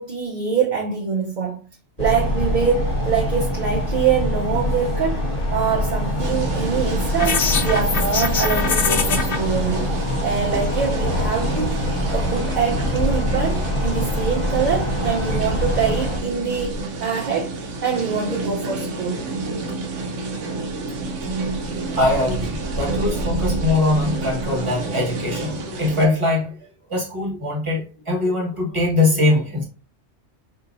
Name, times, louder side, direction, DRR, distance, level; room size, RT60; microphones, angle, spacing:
voice 1, 0.0-1.6 2.0-9.9 10.2-11.8 12.1-19.2, right 6 dB, 45° right, 0.7 m, -24 dB
sound 1, 2.0-16.2, left 1 dB, 35° left, 1.0 m, -24 dB
sound 2, 6.2-26.1, right 2 dB, 90° right, 1.0 m, -28 dB
sound 3, 7.2-9.4, left 6 dB, 60° left, 0.7 m, -23 dB
voice 2, 21.9-26.6 26.9-29.6, left 2 dB, 25° right, 1.4 m, -22 dB
4.2 x 2.7 x 2.6 m
omnidirectional pair, 1.2 m